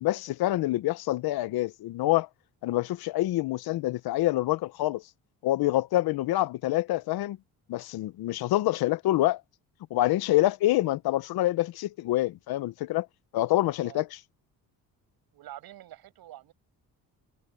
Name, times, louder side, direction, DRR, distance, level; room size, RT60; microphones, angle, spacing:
voice 1, 0.0-2.3 2.6-5.0 5.4-7.4 7.7-9.4 9.9-13.1 13.3-14.2, left 16 dB, 85° left, 0.8 m, -26 dB
voice 2, 15.3-16.5, right 13 dB, 85° right, 7.2 m, -46 dB
cardioid pair, 135°, 36 cm